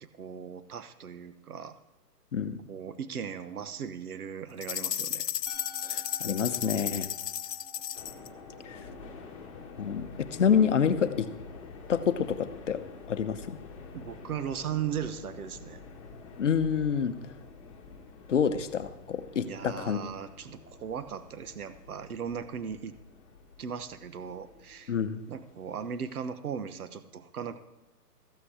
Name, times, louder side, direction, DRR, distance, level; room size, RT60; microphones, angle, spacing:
voice 1, 0.2-1.7 2.7-5.3 13.9-15.8 19.5-23.0 23.6-24.9 25.3-27.6, right 7 dB, 65° right, 12 dB, 1.1 m, -37 dB
sound 1, 4.6-8.3, left 10 dB, 80° left, 0.7 m, -34 dB
Musical instrument, 5.5-11.4, right 1 dB, ahead, 1.7 m, -53 dB
voice 2, 5.8-7.1 8.6-8.8 9.8-11.3 11.9-12.8 13.1-13.6 16.4-17.2 18.3-20.0 24.9-25.2, left 7 dB, 50° left, 10 dB, 0.9 m, -27 dB
sound 2, 7.9-26.3, left 4 dB, 20° left, 1.5 m, -48 dB
14.0 x 8.8 x 4.9 m, 1.1 s
hypercardioid pair, 175°, 48 cm